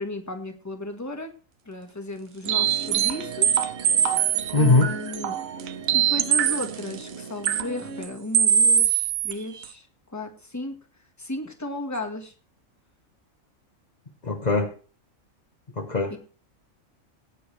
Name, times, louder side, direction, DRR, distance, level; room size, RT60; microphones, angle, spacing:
voice 1, 0.0-1.3 1.6-3.6 4.5-5.4 5.9-9.9 10.1-10.8 11.2-12.3 16.1-16.2, left 1 dB, 10° left, 4 dB, 1.6 m, -34 dB
sound 1, 2.4-8.1, right 6 dB, 50° right, 1.1 m, -38 dB
sound 2, 2.5-6.8 7.4-7.6 8.0-8.1 8.3-9.3 9.6-9.7, right 9 dB, 85° right, 1.2 m, -22 dB
voice 2, 4.5-4.9 14.2-14.7 15.8-16.2, left 3 dB, 35° left, 3 dB, 1.2 m, -21 dB
19.0 x 9.3 x 3.3 m, 0.39 s
omnidirectional pair, 1.4 m